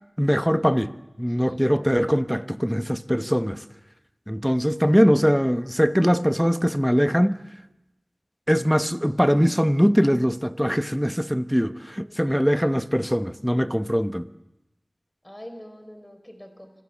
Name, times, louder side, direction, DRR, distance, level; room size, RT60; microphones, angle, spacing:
voice 1, 0.2-3.6 4.3-7.4 8.5-14.3, equal, ahead, 0.9 m, -22 dB
voice 2, 1.3-1.6 12.0-12.3 15.2-16.7, equal, 15° left, 5.2 m, -44 dB
26.5 x 25.5 x 7.2 m
wide cardioid pair, 65°, 0 cm